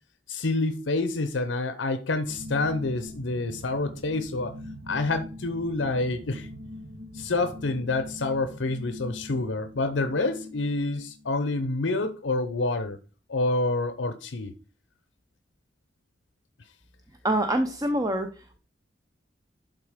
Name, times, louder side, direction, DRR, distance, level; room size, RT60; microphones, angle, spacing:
voice 1, 0.3-4.5 4.9-6.5 7.1-13.0 13.3-14.5, left 2 dB, 90° left, 0.8 m, -28 dB
sound 1, 2.3-11.7, left 1 dB, 65° right, 1.0 m, -43 dB
voice 2, 17.2-18.6, right 1 dB, 20° right, 0.7 m, -26 dB
11.5 x 3.9 x 5.0 m
head